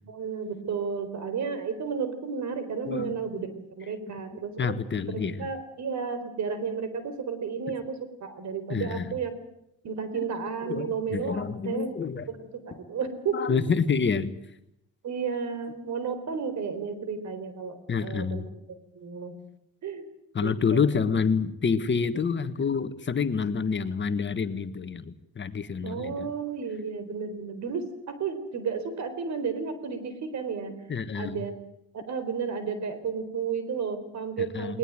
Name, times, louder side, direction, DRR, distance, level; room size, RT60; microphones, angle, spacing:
voice 1, 0.0-4.8 5.1-9.3 9.8-12.0 12.3-13.6 15.0-18.5 18.9-19.4 19.8-20.1 20.4-20.8 25.8-30.8 31.1-31.5 31.9-34.8, right 6 dB, 65° right, 11 dB, 4.3 m, -32 dB
voice 2, 2.8-3.2 4.6-5.5 8.7-9.2 10.1-10.3 10.6-12.3 13.3-14.3 17.9-18.5 20.3-26.3 30.9-31.4 34.5-34.8, left 5 dB, 40° left, 11 dB, 1.6 m, -28 dB
20.0 x 20.0 x 9.0 m, 0.78 s
cardioid pair, 90°, 30 cm